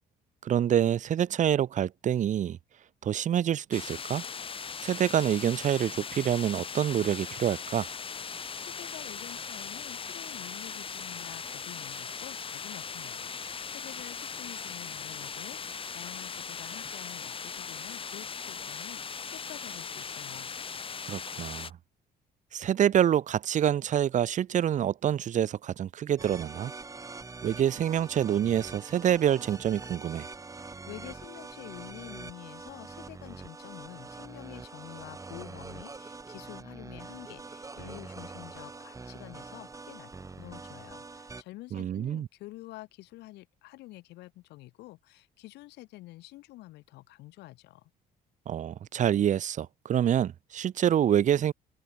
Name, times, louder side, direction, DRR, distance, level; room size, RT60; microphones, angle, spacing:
voice 1, 0.4-2.6 3.0-4.2 4.8-7.9 21.0-21.7 22.5-26.7 27.4-30.3 41.7-42.3 48.5-51.5, right 10 dB, 45° right, 0.9 m, -26 dB
sound 1, 3.7-21.7, left 6 dB, 30° left, 3.0 m, -39 dB
voice 2, 8.3-20.5 30.6-47.9, left 18 dB, 85° left, 3.0 m, -48 dB
sound 2, 26.2-41.4, right 3 dB, 20° right, 2.1 m, -44 dB
open air
cardioid pair, 110°, 17 cm